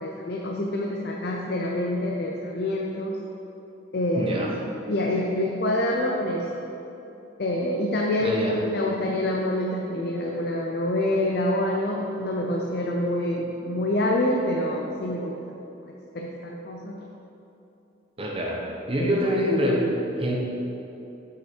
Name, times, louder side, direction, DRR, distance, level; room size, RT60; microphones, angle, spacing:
voice 1, 0.0-3.2 3.9-4.6 4.9-6.7 7.4-15.4 15.8-17.1 19.0-19.3, left 1 dB, 55° left, 0 dB, 0.5 m, -27 dB
voice 2, 4.2-4.5 8.2-8.6 18.2-20.4, equal, 30° right, -2 dB, 0.8 m, -25 dB
6.5 x 5.7 x 4.4 m, 2.9 s
head